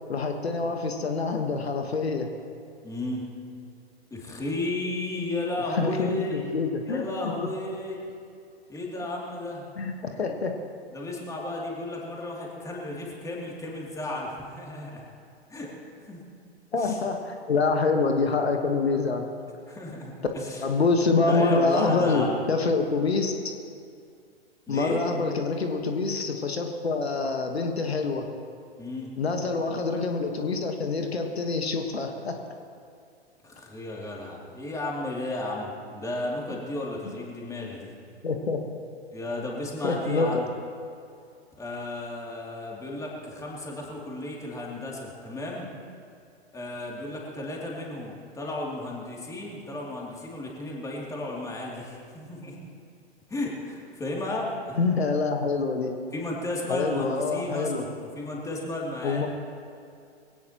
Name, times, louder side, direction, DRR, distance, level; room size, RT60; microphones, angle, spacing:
voice 1, 0.1-2.3 5.7-7.5 9.8-10.6 16.7-19.3 20.6-23.3 24.7-28.3 29.2-32.4 38.2-38.6 39.8-40.4 54.8-55.9 56.7-57.8 59.0-59.3, left 4 dB, 70° left, 4 dB, 1.5 m, -26 dB
voice 2, 2.8-3.2 4.1-6.5 6.9-8.0 8.7-9.6 10.9-15.0 15.5-15.7 16.1-16.2 16.8-17.0 19.7-20.6 21.3-22.4 24.7-25.0 28.8-29.1 33.4-37.9 39.1-40.4 41.6-45.7 46.5-52.6 53.3-54.8 56.1-57.9 58.1-59.3, left 2 dB, 10° left, -3 dB, 2.8 m, -33 dB
22.5 x 17.5 x 3.0 m, 2.4 s
figure-of-eight pair, 105°, 32 cm